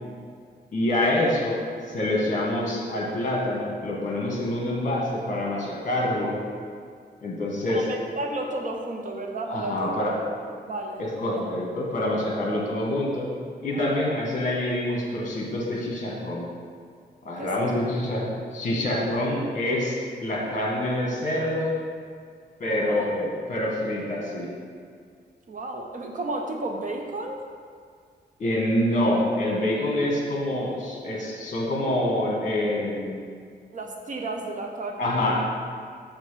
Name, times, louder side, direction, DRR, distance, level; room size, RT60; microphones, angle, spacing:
voice 1, 0.7-6.3 7.2-7.8 9.5-10.1 11.0-13.3 13.6-16.5 17.2-21.7 22.6-24.5 28.4-33.2 35.0-35.5, left 1 dB, 45° left, -3 dB, 1.5 m, -26 dB
voice 2, 7.7-10.0 10.7-11.0 11.3-11.4 13.7-14.1 17.4-17.7 19.1-19.2 22.7-23.1 25.5-27.5 33.7-35.4, right 2 dB, 50° right, 2 dB, 0.6 m, -33 dB
6.4 x 4.5 x 5.8 m, 2.1 s
wide cardioid pair, 175°, 18 cm